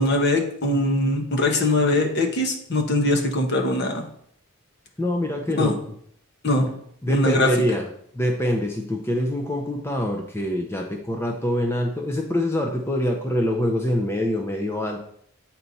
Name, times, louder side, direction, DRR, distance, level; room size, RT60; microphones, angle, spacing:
voice 1, 0.0-4.0 5.5-5.7 6.4-6.7 7.1-7.5, left 1 dB, 50° left, 3 dB, 1.1 m, -21 dB
voice 2, 5.0-5.7 6.6-6.7 7.0-7.9 8.1-15.0, left 1 dB, 10° left, 2 dB, 0.5 m, -25 dB
8.2 x 4.4 x 4.1 m, 0.68 s
head